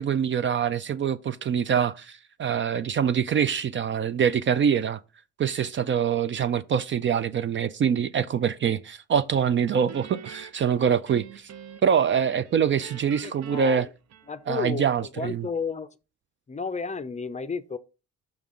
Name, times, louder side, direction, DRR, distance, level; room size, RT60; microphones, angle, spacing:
voice 1, 0.0-5.0 5.4-11.5 11.8-13.9 14.5-15.5, right 7 dB, 40° right, 0.4 m, -24 dB
Guitar, 9.9-12.0 12.3-14.6, right 7 dB, 60° right, 0.7 m, -45 dB
voice 2, 13.2-13.9 14.3-14.9 15.2-15.9 16.5-17.8, left 5 dB, 25° left, 0.5 m, -32 dB
6.0 x 5.3 x 3.7 m
cardioid pair, 90°, 30 cm